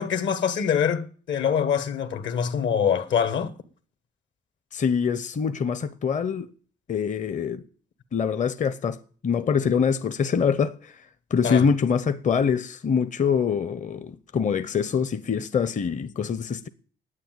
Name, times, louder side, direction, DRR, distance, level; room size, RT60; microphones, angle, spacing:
voice 1, 0.0-3.5 11.4-11.6, left 7 dB, 70° left, 1.5 m, -24 dB
voice 2, 4.7-6.5 6.9-7.6 8.1-16.7, left 6 dB, 40° left, 0.8 m, -25 dB
9.8 x 9.2 x 9.3 m
cardioid pair, 90°, 20 cm